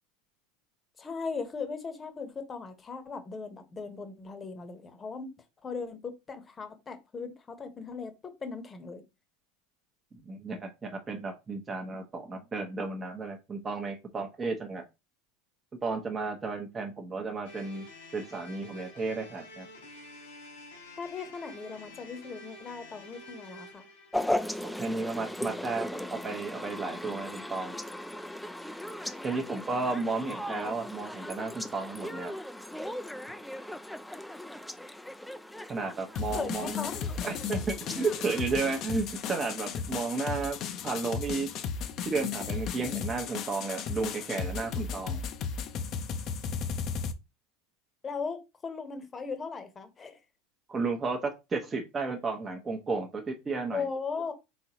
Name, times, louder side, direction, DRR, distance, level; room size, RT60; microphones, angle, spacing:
voice 1, 1.0-5.3 5.6-8.1 8.4-9.0 21.0-23.9 36.3-36.9 48.0-50.2 53.7-54.3, left 5 dB, 25° left, 1.0 m, -38 dB
voice 2, 10.3-14.8 15.8-17.9 18.1-19.7 24.6-27.7 29.2-32.3 35.7-36.8 37.2-40.6 40.8-41.5 42.1-45.2 50.7-53.9, right 4 dB, 25° right, 0.8 m, -33 dB
sound 1, 17.4-25.6, left 1 dB, 85° left, 1.9 m, -49 dB
sound 2, 24.1-39.8, left 1 dB, 5° left, 0.4 m, -38 dB
sound 3, 36.2-47.1, left 6 dB, 50° left, 0.6 m, -35 dB
4.1 x 3.7 x 3.0 m
hypercardioid pair, 90°, 0 cm